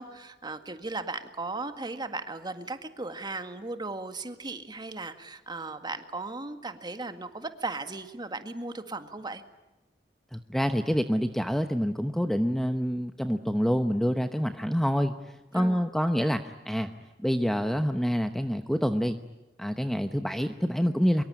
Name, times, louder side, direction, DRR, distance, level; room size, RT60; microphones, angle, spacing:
voice 1, 0.0-9.4 15.5-15.9, right 3 dB, 25° right, 8 dB, 1.9 m, -37 dB
voice 2, 10.3-16.9 17.2-19.2 19.6-21.2, equal, ahead, 7 dB, 0.9 m, -27 dB
24.5 x 23.0 x 9.8 m, 1.0 s
head